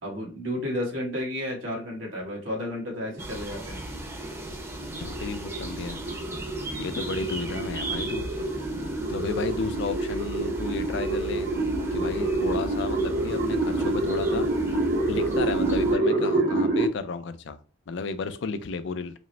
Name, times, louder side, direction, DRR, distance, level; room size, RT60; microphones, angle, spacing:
voice 1, 0.0-3.8, left 1 dB, 85° right, 1.5 m, -32 dB
sound 1, 2.5-16.9, right 2 dB, 60° right, 1.0 m, -28 dB
sound 2, 3.2-16.0, right 1 dB, 15° right, 0.7 m, -37 dB
voice 2, 5.0-6.0 6.8-8.3 9.1-11.5 11.9-14.5 15.1-17.6 17.9-19.1, left 4 dB, 70° left, 0.4 m, -33 dB
4.9 x 2.1 x 3.2 m
head